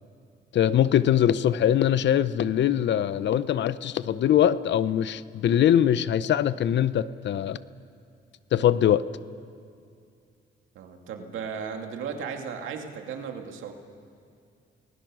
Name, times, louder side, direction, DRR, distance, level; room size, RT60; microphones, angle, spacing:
voice 1, 0.5-7.6 8.5-9.0, left 10 dB, 65° left, 16 dB, 0.7 m, -22 dB
voice 2, 10.7-13.7, right 6 dB, 80° right, 4 dB, 2.3 m, -35 dB
30.0 x 19.5 x 6.3 m, 2.4 s
cardioid pair, 90°, 20 cm